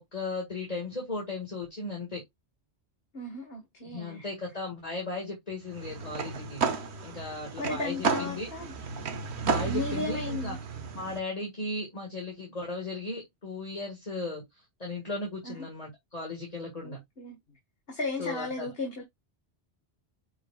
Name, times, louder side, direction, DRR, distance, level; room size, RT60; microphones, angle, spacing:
voice 1, 0.1-2.2 3.8-8.5 9.4-10.6 10.9-17.0 18.2-18.7, left 2 dB, 35° left, 2.1 m, -36 dB
voice 2, 3.1-4.2 7.6-8.7 9.7-10.6 15.4-15.7 16.8-17.4 17.9-19.0, left 2 dB, 60° left, 1.9 m, -35 dB
sound 1, 5.7-11.2, right 5 dB, 75° right, 1.3 m, -33 dB
9.7 x 5.0 x 2.4 m
omnidirectional pair, 1.1 m